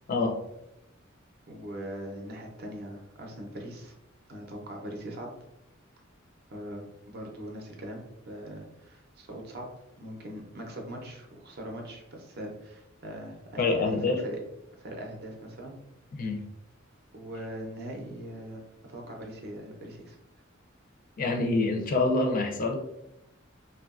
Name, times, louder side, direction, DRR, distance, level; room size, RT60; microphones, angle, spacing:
voice 1, 1.5-3.9 4.3-5.3 6.5-9.7 10.0-14.4 14.8-15.7 17.1-18.6 18.9-20.2, right 1 dB, 50° right, 1 dB, 0.6 m, -41 dB
voice 2, 13.6-14.2 16.2-16.5 21.2-22.8, left 3 dB, 45° left, 3 dB, 0.4 m, -26 dB
2.8 x 2.3 x 2.4 m, 0.86 s
head